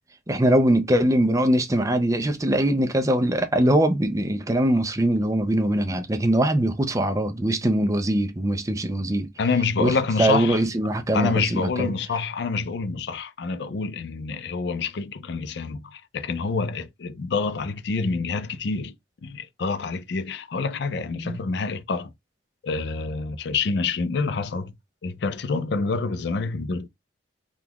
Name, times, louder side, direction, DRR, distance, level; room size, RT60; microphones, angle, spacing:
voice 1, 0.3-9.3 9.8-11.9 21.2-21.4, right 1 dB, 15° right, 0.5 m, -22 dB
voice 2, 9.4-10.6 11.1-18.9 19.2-22.1 22.6-24.7 25.0-26.9, left 4 dB, 60° left, 0.4 m, -27 dB
3.6 x 2.3 x 2.9 m
head